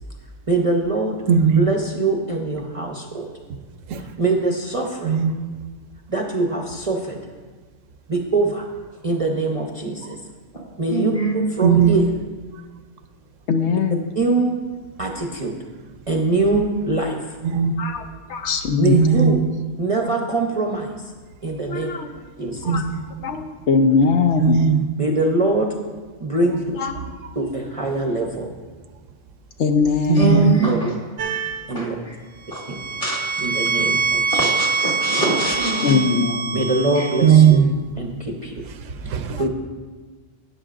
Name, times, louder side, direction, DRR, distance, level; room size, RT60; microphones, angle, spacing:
voice 1, 0.5-1.2 1.5-3.3 4.2-5.2 6.1-7.2 8.1-8.7 9.0-10.2 10.8-12.1 14.2-14.5 15.0-15.5 16.1-17.4 18.8-19.4 19.8-21.1 21.4-21.9 22.4-22.7 25.0-25.7 26.2-26.8 27.4-28.5 30.6-30.9 31.7-31.9 32.7-32.8 33.4-34.2 36.5-37.6 38.0-38.6 39.4-39.5, right 2 dB, 35° right, 0 dB, 0.7 m, -23 dB
voice 2, 1.3-1.7 3.9-4.0 5.0-5.3 11.6-12.0 17.4-17.8 18.9-19.4 22.6-23.2 24.4-24.8 30.1-30.6 37.2-37.7 38.8-39.4, right 7 dB, 90° right, 8 dB, 1.1 m, -17 dB
voice 3, 10.9-11.6 30.1-30.9 31.8-32.2 32.5-32.6 33.0-33.5 34.3-36.2 37.0-37.1, right 1 dB, 30° left, -3 dB, 1.9 m, -24 dB
voice 4, 13.5-14.0 17.8-18.0 18.3-18.9 21.7-22.1 22.6-22.8 23.2-24.6 26.4-27.0 29.6-30.4 35.8-36.7 39.3-39.4, left 5 dB, 70° left, 6 dB, 0.9 m, -21 dB
sound 1, 31.2-31.7 32.5-37.6, right 4 dB, 65° right, 0.8 m, -24 dB
12.5 x 9.2 x 2.5 m, 1.4 s
omnidirectional pair, 1.3 m